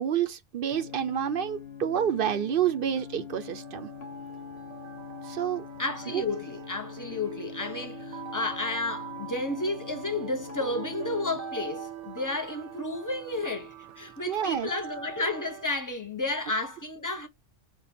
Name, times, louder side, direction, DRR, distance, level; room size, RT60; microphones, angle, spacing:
voice 1, 0.0-3.9 5.2-5.6 6.1-6.2 14.3-14.7, right 9 dB, 60° right, 0.6 m, -28 dB
sound 1, 0.7-11.4, left 7 dB, 65° left, 1.0 m, -43 dB
sound 2, 3.4-15.7, right 8 dB, 75° right, 0.9 m, -43 dB
voice 2, 5.8-17.3, left 2 dB, 20° left, 0.5 m, -32 dB
5.4 x 2.2 x 4.1 m
omnidirectional pair, 1.2 m